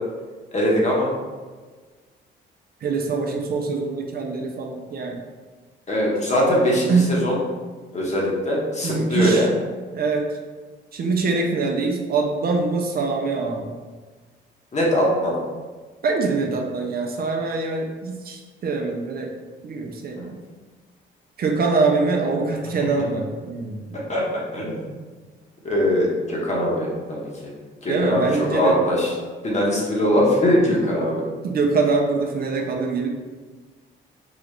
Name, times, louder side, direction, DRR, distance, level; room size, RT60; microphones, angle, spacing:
voice 1, 0.5-1.1 5.9-7.4 7.9-9.5 14.7-15.4 20.2-20.3 24.1-24.2 24.5-24.8 25.6-27.2 27.8-29.1 29.4-31.2, equal, 35° left, -3 dB, 1.1 m, -21 dB
voice 2, 2.8-5.2 6.9-7.1 8.8-9.5 9.9-10.3 10.9-13.7 16.0-19.3 19.6-20.4 21.4-24.0 27.9-28.8 31.4-33.1, right 4 dB, 50° right, 2 dB, 0.5 m, -24 dB
3.9 x 2.4 x 3.2 m, 1.4 s
cardioid pair, 90°, 20 cm